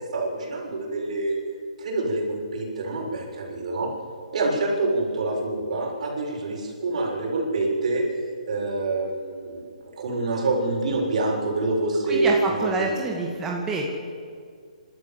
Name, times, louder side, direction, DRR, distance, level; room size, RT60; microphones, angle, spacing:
voice 1, 0.1-1.4 1.8-3.9 4.3-8.0 8.5-13.2, right 2 dB, 60° right, -2 dB, 7.1 m, -26 dB
voice 2, 12.1-13.9, right 3 dB, 15° right, -2 dB, 2.1 m, -27 dB
27.0 x 13.0 x 7.8 m, 2.1 s
hypercardioid pair, 145°, 4 cm